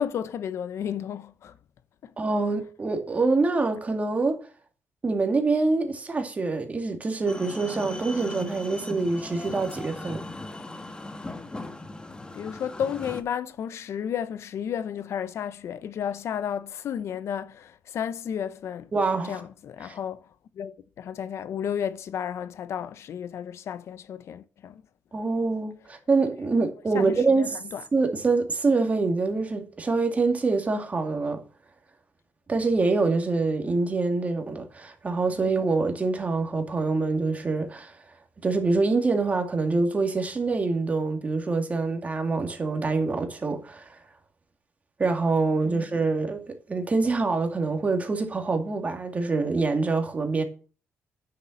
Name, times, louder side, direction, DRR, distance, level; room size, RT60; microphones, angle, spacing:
voice 1, 0.0-1.6 2.0-2.1 12.3-18.9 19.2-24.8 26.9-27.8 35.3-35.5 45.6-45.9, left 8 dB, 70° left, 0.8 m, -33 dB
voice 2, 2.2-4.4 5.0-10.2 18.9-19.4 19.8-19.9 25.1-27.6 27.9-31.4 32.5-37.9 38.4-43.9 45.0-50.4, right 3 dB, 30° right, 2.3 m, -25 dB
sound 1, 7.3-13.2, left 2 dB, 20° left, 1.4 m, -38 dB
10.0 x 6.8 x 5.8 m
cardioid pair, 100°, 5 cm